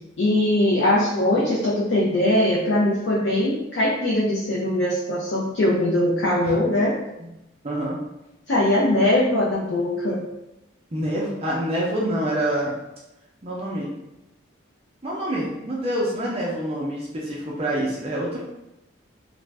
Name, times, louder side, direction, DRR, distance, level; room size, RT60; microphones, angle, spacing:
voice 1, 0.2-7.0 8.5-10.2, left 1 dB, 60° left, -4 dB, 0.4 m, -21 dB
voice 2, 7.6-8.0 10.9-12.7 13.4-13.9 15.0-18.4, right 1 dB, 30° right, -4 dB, 0.5 m, -26 dB
2.5 x 2.1 x 3.2 m, 0.93 s
head